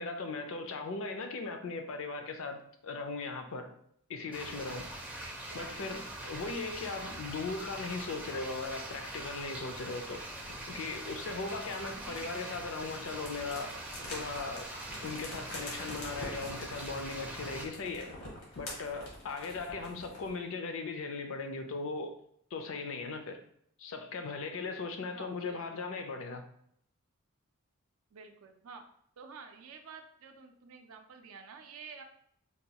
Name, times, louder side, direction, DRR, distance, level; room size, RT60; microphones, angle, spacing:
voice 1, 0.0-3.7 4.1-4.9 5.5-10.2 10.7-13.7 14.1-14.7 15.0-18.1 18.6-22.1 22.5-23.4 23.8-26.4, left 3 dB, 65° left, 0.4 m, -38 dB
sound 1, 4.3-17.7, right 1 dB, 5° right, 0.4 m, -43 dB
voice 2, 5.5-5.9 6.6-7.1 11.9-12.4 19.8-20.0 25.1-26.0 28.1-28.9 29.2-32.0, right 5 dB, 75° right, 0.4 m, -51 dB
sound 2, 10.3-20.4, left 1 dB, 90° left, 1.2 m, -47 dB
4.1 x 2.3 x 2.8 m
head